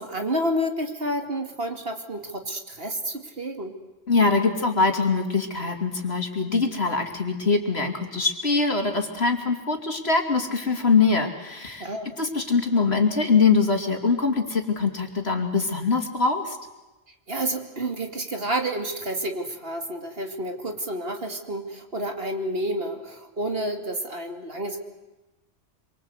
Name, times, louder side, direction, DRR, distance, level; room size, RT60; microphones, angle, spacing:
voice 1, 0.0-3.7 11.8-12.2 17.3-24.8, right 1 dB, 55° right, 5 dB, 2.8 m, -30 dB
voice 2, 4.1-11.9 12.2-16.6, left 4 dB, 60° left, 4 dB, 3.1 m, -23 dB
27.0 x 24.5 x 8.1 m, 1.1 s
omnidirectional pair, 1.2 m